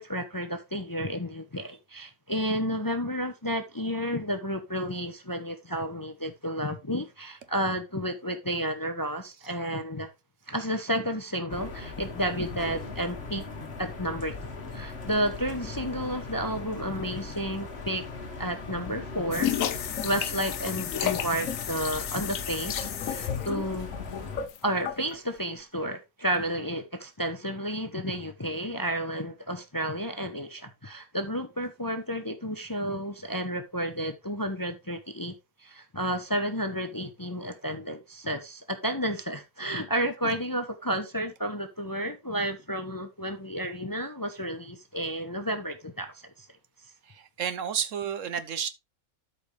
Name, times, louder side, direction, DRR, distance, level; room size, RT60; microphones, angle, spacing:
voice 1, 0.0-10.1 10.5-13.4 13.8-18.0 18.4-19.5 20.0-23.9 24.6-46.5, equal, 20° left, 0.7 m, -31 dB
sound 1, 11.5-24.5, left 3 dB, 45° left, 1.8 m, -39 dB
sound 2, 19.3-25.1, left 10 dB, 70° left, 1.1 m, -32 dB
voice 2, 47.1-48.7, right 8 dB, 65° right, 1.1 m, -31 dB
12.5 x 5.3 x 3.3 m
omnidirectional pair, 1.5 m